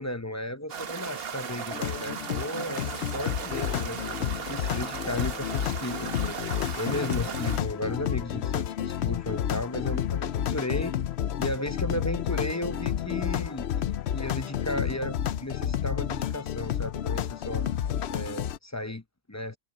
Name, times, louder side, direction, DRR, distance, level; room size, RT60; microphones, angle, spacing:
voice 1, 0.0-10.9 11.4-17.7 18.1-19.6, left 1 dB, 20° left, 0.7 m, -35 dB
sound 1, 0.7-7.6, right 7 dB, 65° right, 1.1 m, -37 dB
sound 2, 1.7-18.6, left 10 dB, 85° left, 0.9 m, -30 dB
sound 3, 1.8-7.4, left 2 dB, 65° left, 3.1 m, -59 dB
omnidirectional pair, 1.1 m